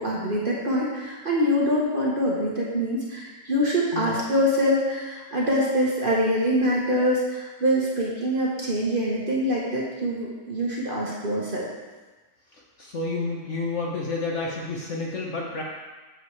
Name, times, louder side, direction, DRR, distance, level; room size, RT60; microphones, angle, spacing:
voice 1, 0.0-11.7, equal, 35° right, -5 dB, 1.2 m, -24 dB
voice 2, 12.8-15.6, left 3 dB, 50° left, -2 dB, 1.0 m, -30 dB
8.0 x 6.7 x 3.2 m, 1.3 s
omnidirectional pair, 1.8 m